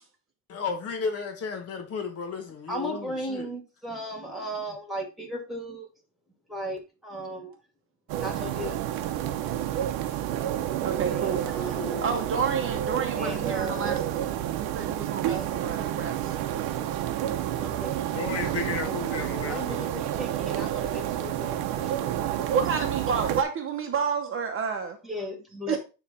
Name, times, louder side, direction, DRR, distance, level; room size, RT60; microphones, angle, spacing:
voice 1, 0.5-3.5 18.1-19.9, left 5 dB, 40° left, 1.2 m, -33 dB
voice 2, 2.7-5.9 6.5-7.6 8.2-8.8 11.1-12.2 13.2-14.0 15.3-15.5 17.3-22.0 25.0-25.8, right 1 dB, ahead, 2.2 m, -36 dB
sound 1, 8.1-23.4, right 11 dB, 80° right, 0.9 m, -30 dB
voice 3, 10.8-11.5 12.0-14.3 14.6-16.4 22.5-25.0 25.7-25.8, right 6 dB, 35° right, 0.9 m, -30 dB
9.6 x 3.3 x 4.1 m
cardioid pair, 150°, 36 cm